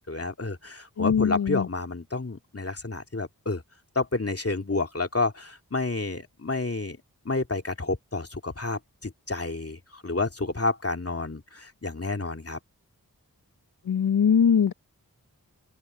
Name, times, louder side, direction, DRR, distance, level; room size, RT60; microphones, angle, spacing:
voice 1, 0.1-3.6 3.9-7.0 7.2-12.6, left 3 dB, 40° left, 2.6 m, -30 dB
voice 2, 1.0-1.7 13.8-14.7, left 7 dB, 80° left, 0.7 m, -21 dB
wide cardioid pair, 55°, 36 cm